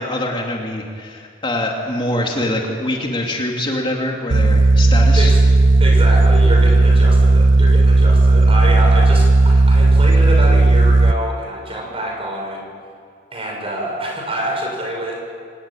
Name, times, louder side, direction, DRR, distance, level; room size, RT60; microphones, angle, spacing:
voice 1, 0.0-5.3, left 1 dB, 25° left, 0 dB, 2.5 m, -24 dB
sound 1, 4.3-11.1, right 2 dB, 80° right, 1.0 m, -12 dB
voice 2, 5.8-12.7 13.3-15.3, right 1 dB, 30° right, 0 dB, 6.5 m, -26 dB
26.0 x 19.0 x 9.0 m, 2.2 s
head